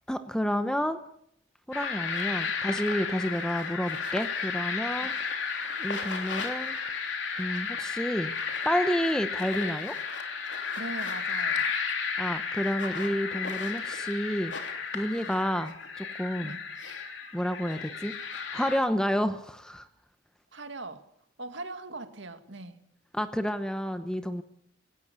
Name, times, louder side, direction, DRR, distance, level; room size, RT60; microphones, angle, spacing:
voice 1, 0.1-1.0 1.7-5.1 5.8-6.8 7.4-8.3 8.6-10.0 12.2-14.5 14.9-16.5 17.3-18.1 18.5-19.9 23.1-24.4, equal, 5° left, 10 dB, 0.8 m, -30 dB
sound 1, 1.7-18.8, left 5 dB, 75° left, 3.1 m, -33 dB
voice 2, 10.8-11.7 16.4-16.6 20.5-21.0 21.4-22.8, right 2 dB, 75° right, 8 dB, 2.1 m, -40 dB
19.0 x 17.0 x 8.2 m, 0.70 s
head